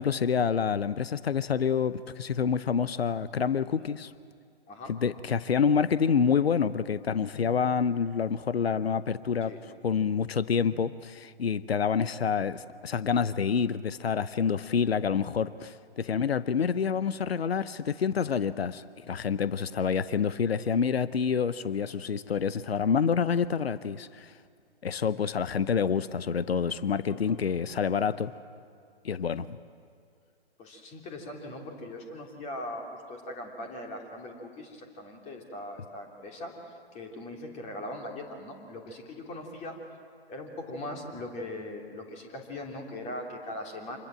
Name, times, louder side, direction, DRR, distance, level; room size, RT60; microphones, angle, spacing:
voice 1, 0.0-4.1 4.9-9.5 9.8-24.3 24.8-28.3 29.0-29.6, left 6 dB, 75° left, 15 dB, 0.8 m, -27 dB
voice 2, 30.6-36.5 36.9-39.8 40.3-44.0, left 1 dB, 20° left, 1 dB, 3.2 m, -40 dB
27.0 x 21.5 x 7.7 m, 2.3 s
figure-of-eight pair, 125°, 31 cm